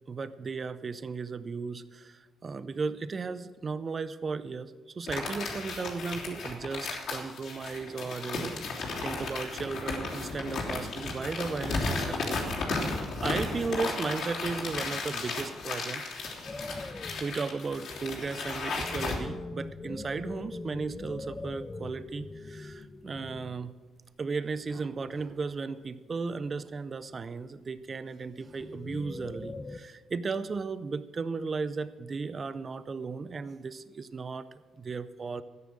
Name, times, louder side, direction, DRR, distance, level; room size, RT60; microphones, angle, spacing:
voice 1, 0.1-8.5 9.0-12.5 12.8-16.0 17.2-23.7 24.2-34.5 34.8-35.4, right 4 dB, 40° right, 14 dB, 0.6 m, -35 dB
sound 1, 5.1-19.2, left 3 dB, 70° left, 3.2 m, -34 dB
sound 2, 16.5-23.7 24.3-25.6 26.1-26.6 27.1-29.8, left 3 dB, 20° left, 0.7 m, -43 dB
13.5 x 9.7 x 6.4 m, 1.3 s
cardioid pair, 90°, 0 cm